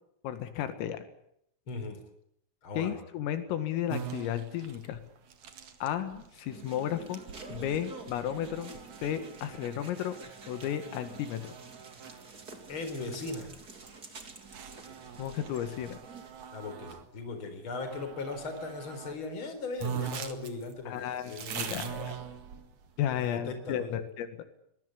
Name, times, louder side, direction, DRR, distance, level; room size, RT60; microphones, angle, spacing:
voice 1, 0.2-1.0 2.8-5.0 5.8-7.2 7.5-8.7 9.0-10.2 10.5-11.5 15.2-16.0 20.9-22.2 23.0-24.3, left 10 dB, 85° left, 10 dB, 4.6 m, -33 dB
voice 2, 1.7-2.0 2.6-3.0 12.7-13.5 16.5-22.0 23.1-24.0, left 3 dB, 25° left, 8 dB, 4.5 m, -38 dB
sound 1, 3.9-17.1 17.7-19.2 19.4-19.5 19.8-22.9, right 8 dB, 55° right, 2.2 m, -43 dB
sound 2, 6.5-16.3, right 4 dB, 25° right, 2.3 m, -49 dB
22.5 x 20.5 x 9.9 m, 0.73 s
omnidirectional pair, 5.8 m